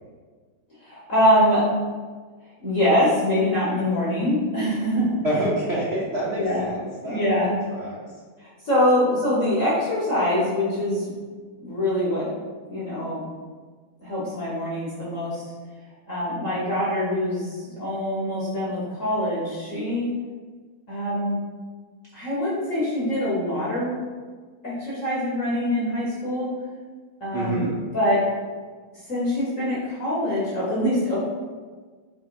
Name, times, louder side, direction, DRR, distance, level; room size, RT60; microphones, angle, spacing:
voice 1, 0.8-1.6 2.6-5.1 6.4-6.6 7.1-7.6 8.4-11.1 11.6-12.3 12.7-13.2 14.0-15.4 16.1-20.1 20.9-21.4 22.1-24.0 24.6-26.5 27.2-27.7 27.9-28.2 29.1-31.2, left 1 dB, 45° left, -8 dB, 1.2 m, -24 dB
voice 2, 5.2-7.2 7.7-8.0 27.3-27.7, right 1 dB, 75° right, -7 dB, 0.6 m, -27 dB
4.6 x 4.3 x 2.5 m, 1.5 s
omnidirectional pair, 2.4 m